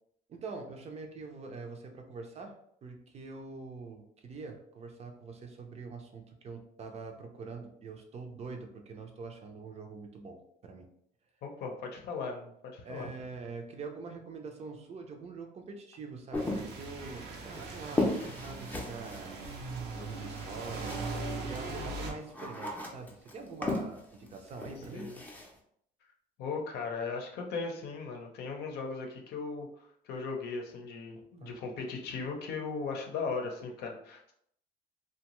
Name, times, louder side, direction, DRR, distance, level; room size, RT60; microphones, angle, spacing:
voice 1, 0.3-10.9 12.8-19.4 19.9-25.1 31.1-31.5, right 4 dB, 40° right, 4 dB, 0.5 m, -44 dB
voice 2, 11.4-13.1 24.9-25.2 26.4-29.7 30.0-34.3, left 4 dB, 75° left, 2 dB, 0.6 m, -37 dB
sound 1, 16.3-21.3 21.5-25.5, left 2 dB, 10° left, 0.5 m, -36 dB
sound 2, 16.4-22.1, right 3 dB, 85° right, 0.6 m, -40 dB
2.7 x 2.2 x 2.9 m, 0.70 s
cardioid pair, 110°, 17 cm